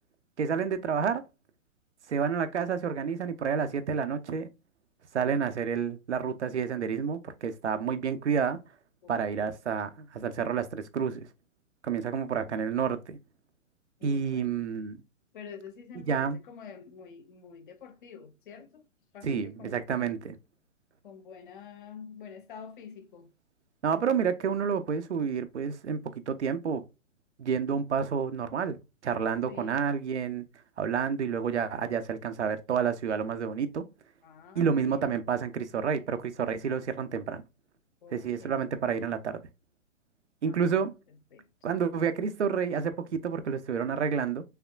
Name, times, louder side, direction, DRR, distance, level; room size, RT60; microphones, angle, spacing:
voice 1, 0.4-1.2 2.1-4.5 5.1-8.6 9.1-11.3 11.8-13.2 14.0-15.0 16.1-16.4 19.2-20.4 23.8-26.8 27.4-28.8 29.0-30.4 30.8-33.8 34.5-37.4 38.1-39.4 40.4-40.9 41.6-44.4, right 6 dB, 60° right, 0.7 m, -29 dB
voice 2, 9.0-9.5 14.0-14.6 15.3-18.9 19.1-20.2 21.0-23.3 29.5-29.8 34.2-35.1 38.0-38.6 40.4-40.8 41.3-41.4, left 6 dB, 40° left, 0.9 m, -47 dB
5.8 x 3.5 x 2.2 m
figure-of-eight pair, 120°, 39 cm